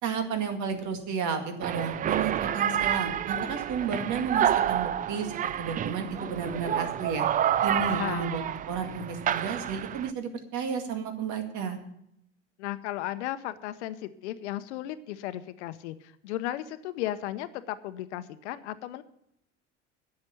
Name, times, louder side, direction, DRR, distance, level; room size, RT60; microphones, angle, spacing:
voice 1, 0.0-7.3 7.6-11.8, right 6 dB, 50° right, 6 dB, 2.1 m, -32 dB
sound 1, 1.6-10.1, right 10 dB, 25° right, 0.4 m, -29 dB
voice 2, 7.9-8.4 12.6-19.0, left 14 dB, 70° left, 12 dB, 0.8 m, -35 dB
10.5 x 7.6 x 9.1 m, 0.76 s
hypercardioid pair, 75°, 36 cm